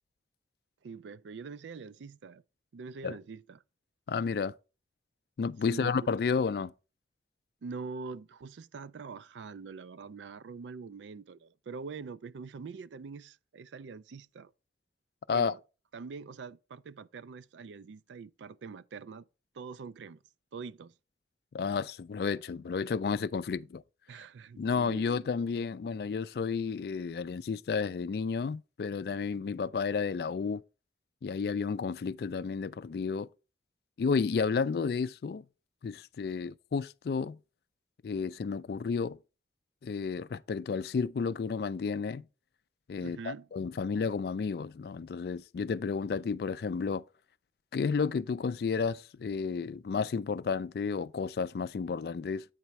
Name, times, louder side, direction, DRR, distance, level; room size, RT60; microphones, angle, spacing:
voice 1, 0.8-2.4 2.7-3.6 5.6-6.1 7.6-14.5 15.3-15.6 15.9-19.3 19.5-20.2 20.5-20.9 24.1-25.3 43.0-43.5, right 5 dB, 85° right, 0.4 m, -44 dB
voice 2, 4.1-4.5 5.4-6.7 15.3-15.5 21.5-23.8 24.6-30.6 31.2-33.3 34.0-35.4 35.8-37.4 38.0-39.2 39.8-42.3 42.9-47.0 47.7-52.4, left 5 dB, 60° left, 0.3 m, -32 dB
8.9 x 4.1 x 4.5 m
head